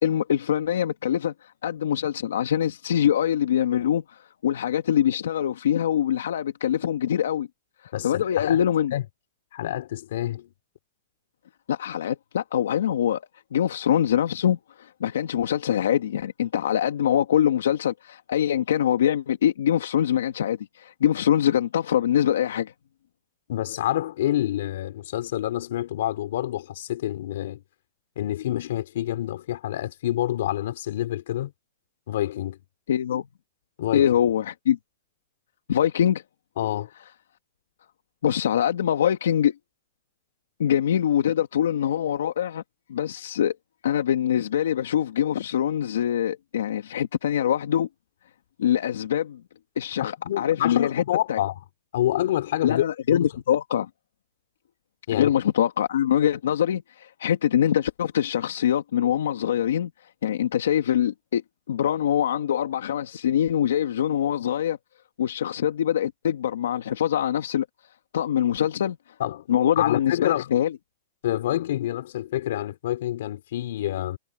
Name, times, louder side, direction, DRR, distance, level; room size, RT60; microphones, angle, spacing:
voice 1, 0.0-7.5 7.8-8.9 11.7-13.2 13.5-22.7 32.9-33.3 33.9-34.8 35.7-36.2 38.2-39.5 40.6-42.6 42.9-43.5 43.8-47.9 48.6-49.4 49.7-51.0 51.3-51.4 52.6-53.9 55.1-59.9 60.2-61.4 61.7-64.8 65.2-67.6 68.1-69.0 69.5-70.7, left 10 dB, 85° left, 1.7 m, -24 dB
voice 2, 7.9-8.6 8.9-9.0 9.5-10.5 23.5-27.6 28.2-31.5 32.1-32.6 33.8-34.1 36.6-36.9 50.0-51.6 51.9-52.8 53.1-53.3 55.1-55.3 69.2-69.4 69.8-70.5 71.2-74.2, left 13 dB, 65° left, 4.2 m, -27 dB
hypercardioid pair, 150°, 0 cm